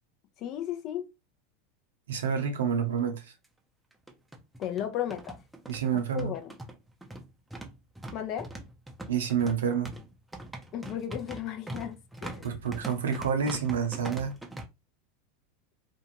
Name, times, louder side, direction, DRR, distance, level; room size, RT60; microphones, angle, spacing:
voice 1, 0.4-1.1 4.6-5.4 6.1-6.5 8.1-8.5 10.7-12.5, left 10 dB, 45° left, 0.6 m, -35 dB
voice 2, 2.1-3.3 5.7-6.3 9.1-9.9 12.4-14.3, right 7 dB, 75° right, 0.7 m, -28 dB
sound 1, 2.6-2.7 3.0-3.1 3.9-14.6, right 1 dB, 5° right, 0.6 m, -42 dB
2.6 x 2.4 x 2.8 m
hypercardioid pair, 85°, 0 cm